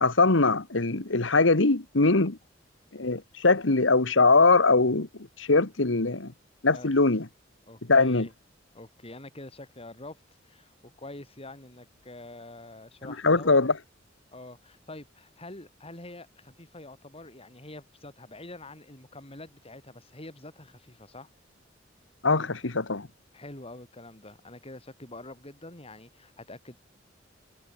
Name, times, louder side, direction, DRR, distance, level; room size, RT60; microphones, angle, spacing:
voice 1, 0.0-2.4 2.9-5.1 5.4-6.3 6.6-7.3 7.9-8.3 13.2-13.7 22.2-23.1, left 3 dB, 75° left, 1.6 m, -22 dB
voice 2, 7.7-8.3 8.7-13.6 14.3-21.3 23.3-26.8, left 2 dB, 30° left, 5.6 m, -45 dB
head